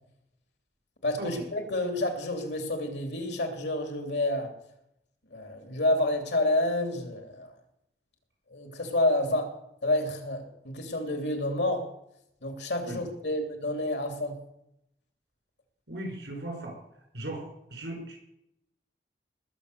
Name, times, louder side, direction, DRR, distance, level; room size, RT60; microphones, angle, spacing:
voice 1, 1.0-4.5 5.3-7.5 8.5-9.5 9.8-11.8 12.4-14.4, left 1 dB, 85° left, 5 dB, 3.1 m, -29 dB
voice 2, 15.9-16.8 17.1-18.2, right 1 dB, 80° right, 2 dB, 5.7 m, -37 dB
20.0 x 7.6 x 6.8 m, 0.79 s
head